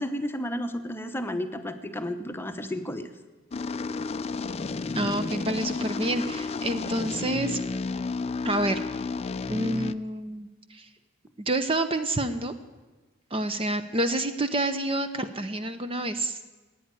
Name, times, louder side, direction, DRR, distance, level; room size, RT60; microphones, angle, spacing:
voice 1, 0.0-3.1, left 1 dB, 10° left, 7 dB, 0.9 m, -32 dB
sound 1, 3.5-9.9, left 4 dB, 30° left, 0.4 m, -31 dB
voice 2, 4.9-7.6 8.4-8.8 9.5-10.9 11.4-12.5 13.3-16.4, right 1 dB, 25° right, 9 dB, 0.7 m, -28 dB
15.5 x 9.4 x 9.7 m, 1.2 s
head